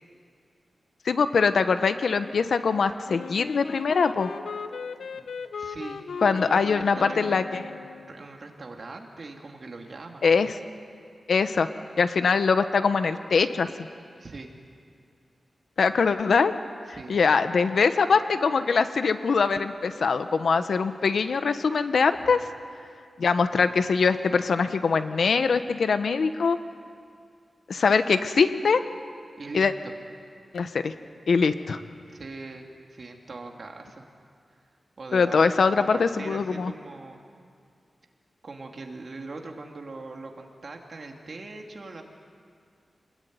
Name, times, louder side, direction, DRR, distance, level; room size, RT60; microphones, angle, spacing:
voice 1, 1.0-4.3 6.2-7.6 10.2-10.5 11.3-11.7 12.0-13.7 15.8-16.5 17.1-22.5 23.2-26.6 27.7-28.8 29.5-29.7 30.5-30.9 31.3-31.8 35.1-36.7, left 5 dB, 75° left, 9 dB, 1.2 m, -22 dB
Wind instrument woodwind instrument, 3.1-8.2, left 5 dB, 90° left, 0.9 m, -37 dB
voice 2, 5.5-10.2 14.2-14.5 16.9-17.2 29.4-29.9 32.1-34.0 35.0-37.2 38.4-42.0, right 3 dB, 45° right, 2 dB, 2.8 m, -41 dB
26.5 x 20.5 x 9.5 m, 2.3 s
wide cardioid pair, 130°, 0 cm